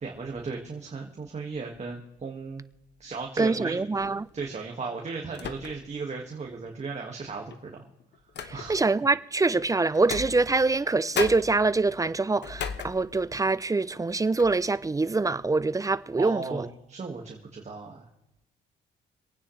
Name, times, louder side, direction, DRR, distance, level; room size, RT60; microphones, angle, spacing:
voice 1, 0.0-2.6 3.0-7.9 8.5-8.8 16.2-18.1, right 4 dB, 35° right, 1.9 m, -36 dB
voice 2, 3.4-4.3 8.7-16.7, right 3 dB, 15° right, 0.5 m, -24 dB
sound 1, 4.0-4.3 5.3-6.0 6.4-6.5 7.5-8.9 9.9-10.9 11.1-13.5 13.9-14.1 14.4-14.7, left 7 dB, 60° left, 1.1 m, -37 dB
26.5 x 9.4 x 3.3 m
cardioid pair, 90°, 20 cm